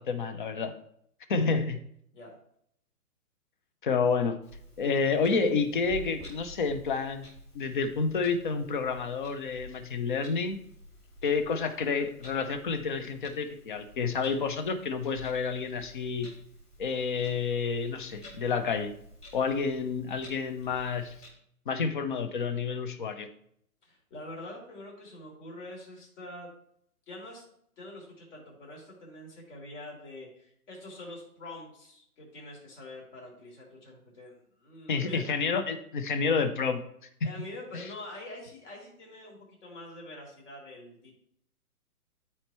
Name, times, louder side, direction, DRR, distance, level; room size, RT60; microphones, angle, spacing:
voice 1, 0.1-0.7 1.3-1.8 3.8-4.4 4.8-7.3 7.5-10.6 11.2-16.3 16.8-18.9 19.3-21.1 21.7-23.3 34.9-36.8 37.2-37.3 37.7-37.8, left 5 dB, 35° left, 9 dB, 0.6 m, -29 dB
Clock, 4.4-21.3, equal, 15° left, 1.9 m, -50 dB
voice 2, 23.8-26.5 27.1-27.4 27.8-35.2 37.2-41.2, left 1 dB, 50° left, -2 dB, 3.5 m, -45 dB
12.5 x 4.4 x 3.0 m, 0.69 s
hypercardioid pair, 150°, 46 cm